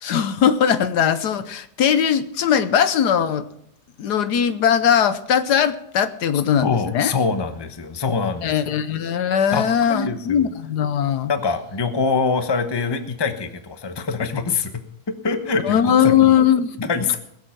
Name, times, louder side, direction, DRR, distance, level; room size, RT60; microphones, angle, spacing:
voice 1, 0.0-3.5 4.0-7.1 8.4-11.3 15.6-16.8, left 8 dB, 70° left, 12 dB, 1.3 m, -19 dB
voice 2, 6.6-8.5 9.5-10.5 11.3-14.8 15.2-16.3 16.8-17.2, left 4 dB, 20° left, 8 dB, 0.8 m, -24 dB
21.0 x 7.4 x 5.9 m, 0.75 s
omnidirectional pair, 1.9 m